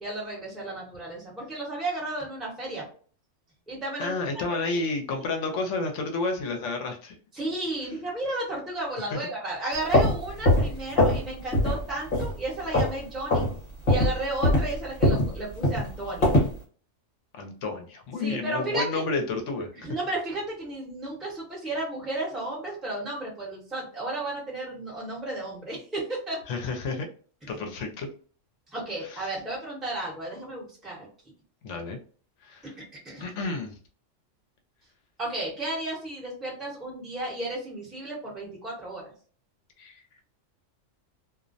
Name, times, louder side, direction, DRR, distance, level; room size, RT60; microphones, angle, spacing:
voice 1, 0.0-2.8 3.7-4.1 4.5-4.8 5.5-5.6 7.3-13.5 13.9-16.3 18.2-19.0 19.7-26.4 28.7-31.1 33.0-33.4 35.2-39.0, right 2 dB, ahead, -4 dB, 0.9 m, -33 dB
voice 2, 4.0-7.2 9.1-9.2 17.3-19.7 26.5-27.1 27.5-28.1 29.0-29.3 31.6-32.0 32.4-32.7 33.2-33.7 39.8-40.2, left 3 dB, 75° left, 4 dB, 0.9 m, -31 dB
sound 1, 9.7-11.3 11.5-11.8 12.1-13.0 13.3-13.5 13.9-16.6, left 1 dB, 45° left, 1.2 m, -22 dB
2.5 x 2.0 x 2.5 m, 0.43 s
omnidirectional pair, 1.3 m